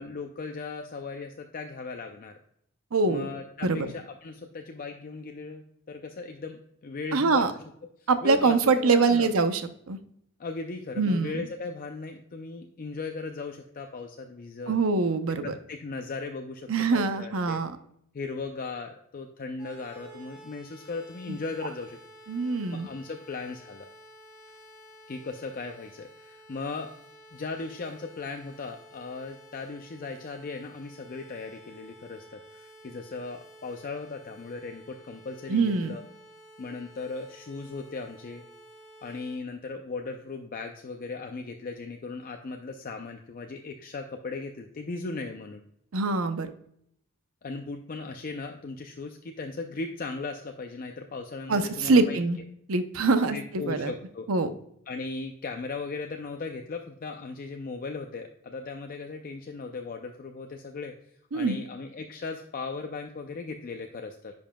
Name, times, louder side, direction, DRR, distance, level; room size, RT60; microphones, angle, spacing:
voice 1, 0.0-2.4 3.1-7.6 8.0-9.3 10.4-14.8 15.4-17.6 18.1-22.0 22.4-23.9 25.1-26.9 27.3-36.0 36.6-38.4 39.0-45.6 47.4-52.2 53.3-54.3 54.9-60.9 61.3-64.3, left 4 dB, 40° left, 4 dB, 0.5 m, -37 dB
voice 2, 2.9-3.3 3.6-3.9 7.1-7.5 8.1-9.6 9.9-10.0 11.0-11.5 14.7-15.5 16.7-17.7 21.3-21.4 22.3-22.9 35.5-35.9 45.9-46.5 51.5-52.4 52.7-53.9 54.3-54.5 61.3-61.6, right 4 dB, 75° right, 10 dB, 0.7 m, -24 dB
sound 1, 19.6-39.4, right 1 dB, 5° right, 2.1 m, -52 dB
10.0 x 5.3 x 2.2 m, 0.71 s
head